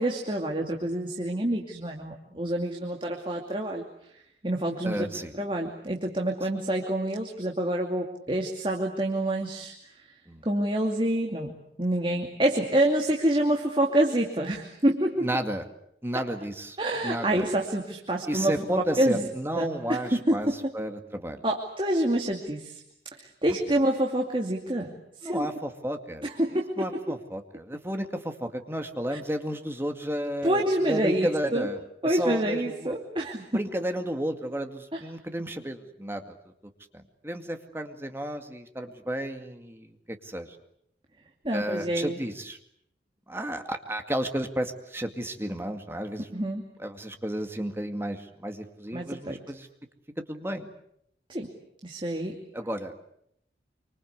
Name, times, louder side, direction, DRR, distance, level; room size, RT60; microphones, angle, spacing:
voice 1, 0.0-3.8 4.4-5.1 5.3-10.0 10.4-15.3 16.8-18.6 19.0-19.2 19.6-20.6 21.4-22.8 23.1-25.5 26.2-27.1 29.1-29.2 30.4-31.7 32.0-33.4 34.9-35.0 41.4-42.2 46.3-46.6 48.9-49.4 51.3-51.5 51.8-52.4, right 1 dB, 30° right, 1 dB, 2.6 m, -27 dB
voice 2, 4.8-5.3 10.3-10.4 15.2-15.6 16.0-16.8 17.0-17.5 18.3-20.5 20.7-21.4 25.2-26.3 26.8-31.8 32.0-32.9 33.5-36.4 36.9-40.6 41.5-42.6 43.3-46.3 46.8-49.7 50.3-50.7 52.5-52.9, right 1 dB, 15° right, 5 dB, 2.2 m, -32 dB
27.5 x 25.5 x 8.2 m, 0.73 s
head